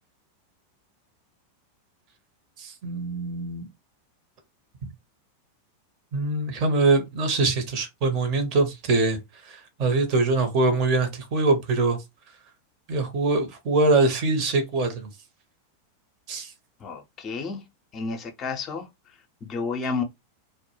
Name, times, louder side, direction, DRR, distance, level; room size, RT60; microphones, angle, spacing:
voice 1, 2.6-3.7 6.1-9.2 9.4-12.0 12.9-15.1 16.3-16.5, right 3 dB, 40° right, 0.7 m, -23 dB
voice 2, 16.8-17.6 17.9-20.0, left 4 dB, 30° left, 0.5 m, -31 dB
2.1 x 2.1 x 2.9 m
figure-of-eight pair, 90°, 0 cm